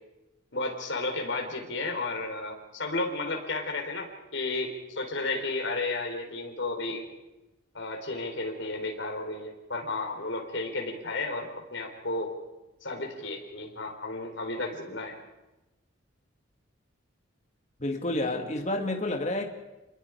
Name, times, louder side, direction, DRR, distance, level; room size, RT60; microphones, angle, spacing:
voice 1, 0.5-7.0 7.7-12.3 12.8-15.1, left 2 dB, 65° left, 2 dB, 4.2 m, -33 dB
voice 2, 17.8-19.4, left 1 dB, 35° left, 3 dB, 2.4 m, -29 dB
28.0 x 22.0 x 4.9 m, 1.0 s
head